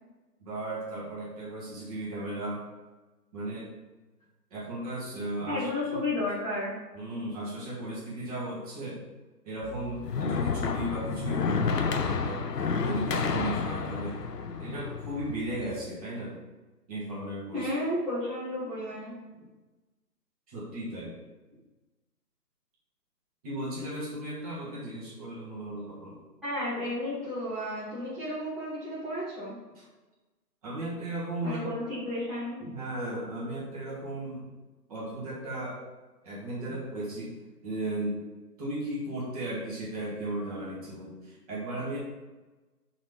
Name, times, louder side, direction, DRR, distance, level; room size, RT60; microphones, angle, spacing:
voice 1, 0.4-2.6 3.3-3.7 4.5-5.7 6.9-9.0 9.4-14.2 14.6-16.4 16.9-17.7 20.5-21.2 23.4-26.2 29.8-29.9 30.6-31.6 32.7-34.5 34.9-35.8 36.2-37.4 37.6-38.2 38.6-42.0, right 1 dB, 20° right, -5 dB, 2.0 m, -35 dB
voice 2, 5.5-6.7 17.5-19.1 26.4-29.5 31.4-32.8, left 1 dB, ahead, -18 dB, 1.1 m, -32 dB
sound 1, 9.6-15.8, left 5 dB, 70° left, 0.9 m, -30 dB
6.2 x 4.2 x 5.4 m, 1.2 s
figure-of-eight pair, 150°, 50 cm